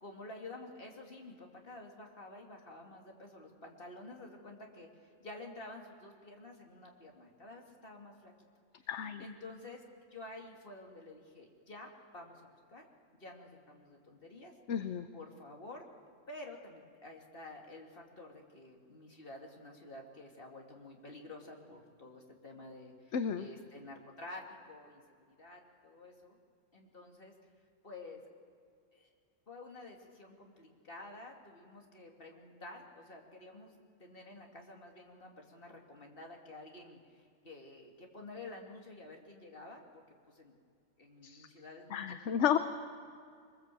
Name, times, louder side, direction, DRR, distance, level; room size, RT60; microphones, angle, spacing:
voice 1, 0.0-8.3 8.8-8.9 9.2-9.8 10.1-12.9 13.2-14.5 15.1-15.9 16.3-26.4 26.7-27.3 27.8-28.2 28.9-29.1 29.5-33.7 34.0-40.5 41.0-42.6, left 2 dB, 45° left, 1 dB, 2.7 m, -50 dB
voice 2, 8.9-9.2 14.7-15.1 23.1-23.4 41.2-41.5 41.9-42.6, left 8 dB, 65° left, 10 dB, 1.0 m, -32 dB
23.5 x 20.5 x 7.7 m, 2.3 s
omnidirectional pair, 1.4 m